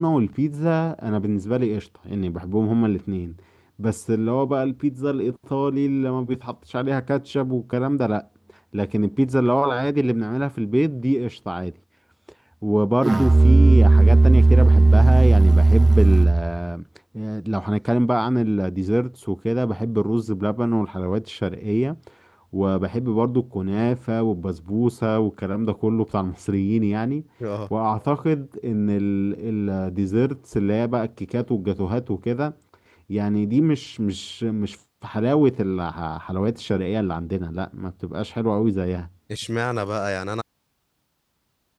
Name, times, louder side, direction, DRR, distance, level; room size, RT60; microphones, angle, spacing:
voice 1, 0.0-3.3 3.8-8.3 8.7-11.7 12.6-16.8 17.1-27.2 27.7-32.5 32.9-39.1, right 1 dB, 10° right, 2.0 m, -23 dB
Musical instrument, 13.0-16.6, right 2 dB, 50° right, 0.3 m, -14 dB
voice 2, 39.3-40.4, left 1 dB, 10° left, 6.6 m, -26 dB
wide cardioid pair, 50°, 0 cm